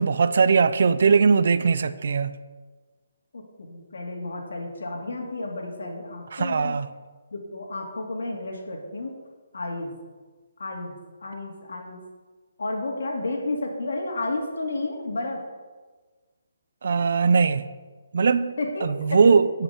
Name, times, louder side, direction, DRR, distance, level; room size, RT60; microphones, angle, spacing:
voice 1, 0.0-2.4 6.3-6.9 16.8-17.6 18.1-19.6, right 5 dB, 50° right, 0.6 m, -20 dB
voice 2, 3.3-6.8 7.3-9.1 9.5-9.9 10.6-11.0 11.2-12.0 12.6-15.4 18.6-19.2, left 2 dB, 75° left, 2.5 m, -31 dB
12.5 x 5.8 x 8.1 m
hypercardioid pair, 170°, 0 cm